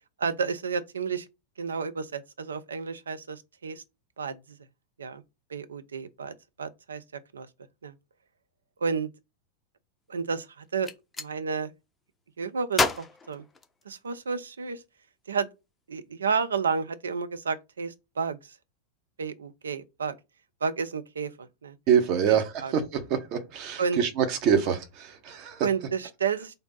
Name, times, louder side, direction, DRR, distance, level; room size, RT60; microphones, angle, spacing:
voice 1, 0.2-1.3 1.6-3.8 4.2-4.4 5.0-5.2 5.5-7.0 7.3-7.5 7.8-7.9 8.8-9.1 10.1-10.9 11.2-11.7 12.4-13.4 13.9-14.8 15.3-15.5 15.9-18.5 19.2-20.1 20.6-21.8 22.3-22.7 23.8-24.0 25.6-26.5, right 5 dB, 70° right, 0.4 m, -31 dB
Gunshot gunfire, 10.6-11.3 12.7-14.2, left 3 dB, 10° left, 0.5 m, -30 dB
voice 2, 21.9-25.7, right 8 dB, 40° right, 0.9 m, -25 dB
3.3 x 2.6 x 3.9 m
figure-of-eight pair, 90°, 0 cm